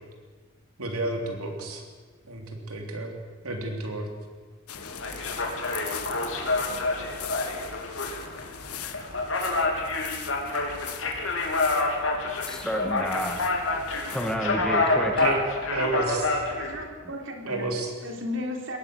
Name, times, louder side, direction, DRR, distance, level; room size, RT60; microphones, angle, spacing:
voice 1, 0.8-1.8 2.3-3.2 3.4-4.1 15.2-15.4 15.7-16.4 17.5-17.9, right 2 dB, 85° right, 3 dB, 3.5 m, -30 dB
sound 1, 4.7-14.4, left 9 dB, 90° left, 1.5 m, -41 dB
sound 2, 4.7-16.8, left 2 dB, 60° left, 3.4 m, -28 dB
voice 2, 12.5-13.4 14.1-15.1, equal, 5° left, 2 dB, 1.9 m, -29 dB
voice 3, 16.5-17.7 18.0-18.8, left 1 dB, 55° right, 2 dB, 3.7 m, -34 dB
23.0 x 18.0 x 6.6 m, 1.5 s
head